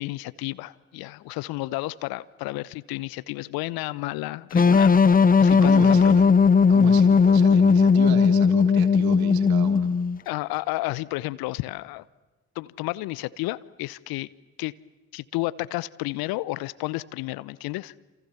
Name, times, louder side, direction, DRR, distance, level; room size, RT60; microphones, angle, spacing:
voice 1, 0.0-6.1 10.3-12.0 12.5-14.3 14.6-14.7 15.1-17.9, left 19 dB, 65° left, 0.9 m, -32 dB
sound 1, 4.5-10.2, left 5 dB, 20° left, 0.8 m, -17 dB
voice 2, 5.5-6.3 6.7-9.9, right 9 dB, 65° right, 3.1 m, -34 dB
28.5 x 27.5 x 7.1 m
figure-of-eight pair, 50°, 39 cm